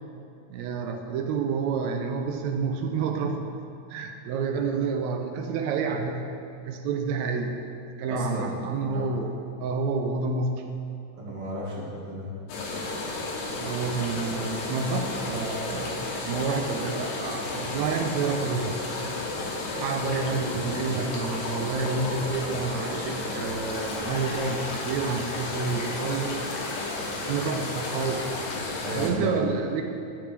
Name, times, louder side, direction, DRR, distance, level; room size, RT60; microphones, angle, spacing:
voice 1, 0.5-3.5 3.9-6.3 6.7-7.6 8.0-10.7 13.5-18.8 19.8-26.5 27.3-28.3 28.9-29.8, right 4 dB, 80° right, 4 dB, 1.9 m, -29 dB
voice 2, 8.1-8.5 8.8-9.1 11.2-12.4 28.8-29.6, equal, 55° right, -7 dB, 2.8 m, -34 dB
sound 1, 12.5-29.1, left 2 dB, 75° left, 2.2 m, -32 dB
11.0 x 6.8 x 3.3 m, 2.6 s
omnidirectional pair, 3.4 m